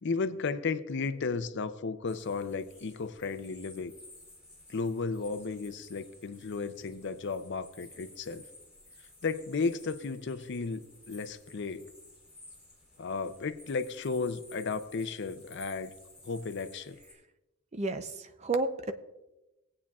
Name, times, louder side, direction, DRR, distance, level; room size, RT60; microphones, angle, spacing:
voice 1, 0.0-3.9 4.7-8.5 9.2-11.9 13.0-15.9 16.2-17.0, left 4 dB, 55° left, 11 dB, 0.5 m, -34 dB
sound 1, 2.1-17.1, left 2 dB, 5° right, 3.8 m, -55 dB
voice 2, 17.7-18.9, right 3 dB, 30° right, 9 dB, 0.5 m, -31 dB
18.5 x 8.7 x 2.4 m, 0.98 s
head